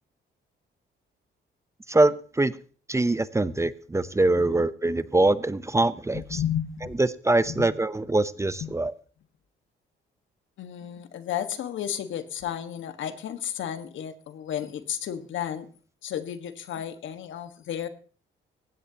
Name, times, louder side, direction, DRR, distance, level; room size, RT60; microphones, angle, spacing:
voice 1, 1.9-2.6 2.9-6.4 7.0-8.9, right 2 dB, 15° right, 15 dB, 0.7 m, -23 dB
voice 2, 6.1-7.0 7.5-7.7 8.6-8.7 10.6-15.7 16.0-17.9, left 10 dB, 75° left, 10 dB, 1.6 m, -33 dB
19.5 x 16.0 x 2.9 m, 0.41 s
cardioid pair, 90°, 20 cm